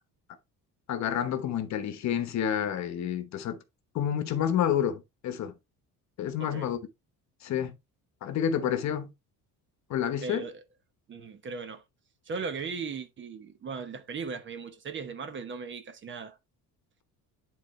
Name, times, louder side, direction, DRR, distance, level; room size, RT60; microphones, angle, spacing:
voice 1, 0.9-3.6 3.9-5.5 6.2-6.8 7.4-7.7 8.2-9.1 9.9-10.4, left 9 dB, 50° left, 1.0 m, -29 dB
voice 2, 10.2-10.6 11.1-11.8 12.3-16.4, right 5 dB, 30° right, 0.9 m, -37 dB
10.5 x 4.0 x 3.2 m
cardioid pair, 170°, 37 cm